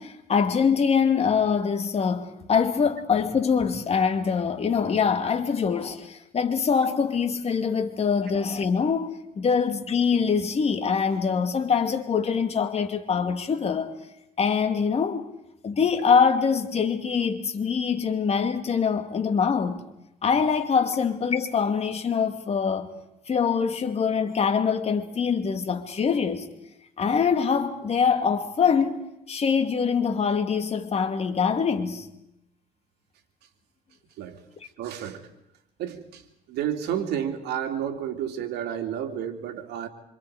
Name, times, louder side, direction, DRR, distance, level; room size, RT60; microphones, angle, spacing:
voice 1, 0.0-13.9 14.4-15.3 15.6-19.8 20.2-22.9 23.3-26.5 27.0-32.1, left 6 dB, 40° left, 2.4 m, -24 dB
voice 2, 34.8-35.2 35.8-36.2 36.5-39.9, right 9 dB, 80° right, 2.8 m, -31 dB
26.5 x 26.0 x 5.1 m
cardioid pair, 110°, 17 cm